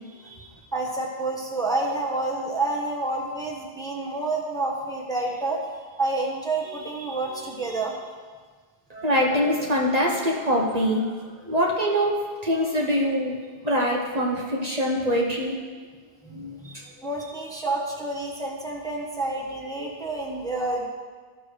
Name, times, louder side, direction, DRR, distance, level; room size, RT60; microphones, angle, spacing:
voice 1, 0.1-8.0 16.2-20.9, right 2 dB, 5° left, -1 dB, 1.0 m, -29 dB
voice 2, 8.9-11.1 11.5-13.4 13.6-15.6 16.3-16.6, equal, 40° right, -2 dB, 1.0 m, -24 dB
13.5 x 6.1 x 3.2 m, 1.5 s
omnidirectional pair, 1.1 m